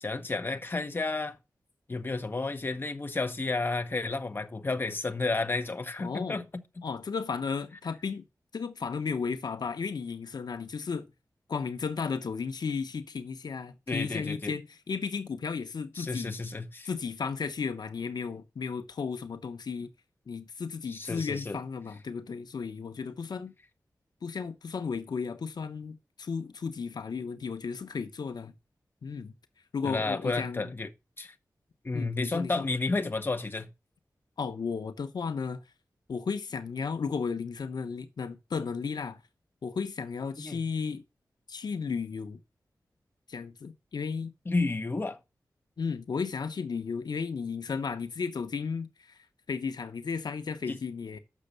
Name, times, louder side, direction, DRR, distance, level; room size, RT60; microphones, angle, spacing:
voice 1, 0.0-1.4 1.9-6.6 13.9-14.5 16.0-16.9 20.9-21.6 29.8-30.9 31.2-31.3 31.8-33.7 40.4-40.6 44.5-45.2 50.7-50.8, left 3 dB, 30° left, 1.0 m, -31 dB
voice 2, 6.0-6.4 6.8-8.2 8.5-11.1 11.5-16.4 16.8-19.9 20.3-23.5 24.2-28.5 29.0-29.3 29.7-30.7 31.9-32.7 34.4-35.6 36.1-39.2 39.6-41.0 41.5-42.4 43.3-44.3 45.8-51.2, left 5 dB, 75° left, 0.9 m, -34 dB
7.3 x 6.4 x 6.6 m
wide cardioid pair, 120°, 7 cm